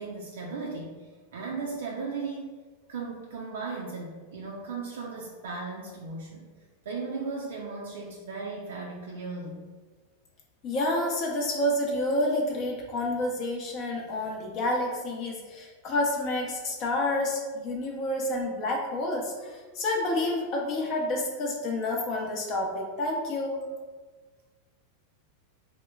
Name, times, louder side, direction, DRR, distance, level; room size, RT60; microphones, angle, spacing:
voice 1, 0.0-2.5 2.9-6.5 6.9-9.7, right 4 dB, 80° right, -3 dB, 0.3 m, -36 dB
voice 2, 10.6-23.6, left 1 dB, 45° left, -1 dB, 0.6 m, -29 dB
2.9 x 2.0 x 2.2 m, 1.4 s
hypercardioid pair, 105°, 0 cm